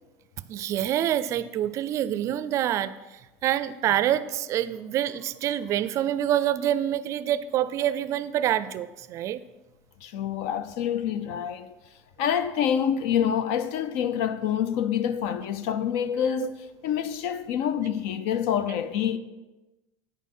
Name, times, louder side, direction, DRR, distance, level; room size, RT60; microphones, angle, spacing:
voice 1, 0.5-9.4 16.4-16.5, right 11 dB, 40° right, 0.4 m, -26 dB
voice 2, 10.0-11.7 12.2-16.6 16.8-19.2, left 9 dB, 80° left, 0.6 m, -27 dB
9.2 x 6.4 x 5.5 m
cardioid pair, 155°, 8 cm